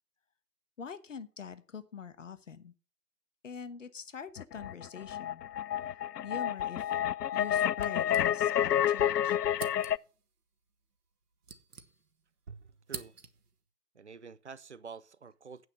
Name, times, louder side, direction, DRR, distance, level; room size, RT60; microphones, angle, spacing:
voice 1, 0.8-2.7 3.4-5.4 6.2-6.9 7.3-9.4, left 6 dB, 50° left, 1.2 m, -44 dB
sound 1, 4.4-10.0, left 10 dB, 75° left, 0.5 m, -29 dB
sound 2, 7.8-8.8 9.0-9.1 9.5-10.2 11.0-12.3 12.6-13.6, right 5 dB, 65° right, 1.4 m, -47 dB
voice 2, 12.5-13.1 13.9-15.7, right 5 dB, 45° right, 0.6 m, -48 dB
8.7 x 6.2 x 8.0 m
figure-of-eight pair, 155°, 49 cm